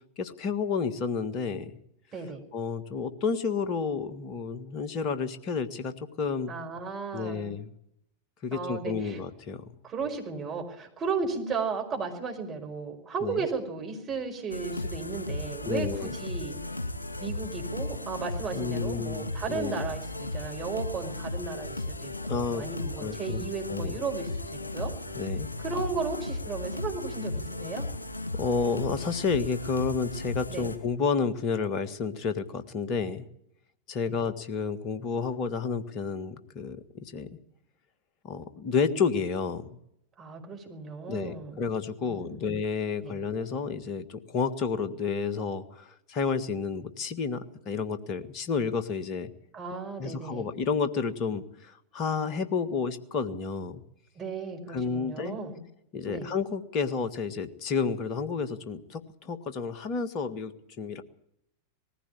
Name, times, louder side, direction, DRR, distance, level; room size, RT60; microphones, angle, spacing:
voice 1, 0.2-1.7 2.5-6.5 7.1-7.7 8.4-9.6 13.2-13.4 15.6-16.1 18.5-19.8 22.3-22.6 23.0-23.4 23.7-24.0 25.1-25.5 28.3-33.3 33.9-37.3 38.2-39.7 41.1-49.3 50.0-53.8 54.7-55.4 55.9-60.5 60.8-61.0, left 5 dB, 40° left, 11 dB, 1.7 m, -30 dB
voice 2, 2.1-2.4 6.5-7.5 8.5-9.2 9.8-16.6 17.2-24.9 25.6-27.9 30.5-30.7 34.1-34.2 40.2-41.6 42.0-42.4 43.0-43.2 49.5-50.5 54.2-55.6 56.1-56.3, right 4 dB, 25° right, 3 dB, 5.2 m, -35 dB
sound 1, 14.5-30.8, left 2 dB, 80° left, 2.4 m, -35 dB
19.5 x 15.5 x 8.7 m, 0.77 s
figure-of-eight pair, 90°, 0 cm